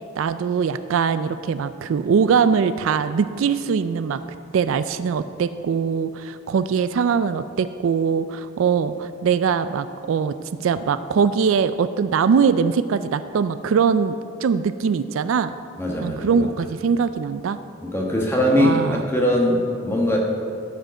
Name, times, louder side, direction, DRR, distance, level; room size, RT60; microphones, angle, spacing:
voice 1, 0.2-4.2 4.5-10.3 10.6-15.5 16.0-17.6 18.6-19.0, right 6 dB, 70° right, 13 dB, 0.3 m, -22 dB
voice 2, 15.8-16.4 17.8-18.7 19.1-20.2, left 1 dB, 10° left, -1 dB, 1.2 m, -21 dB
12.5 x 5.1 x 6.3 m, 2.5 s
head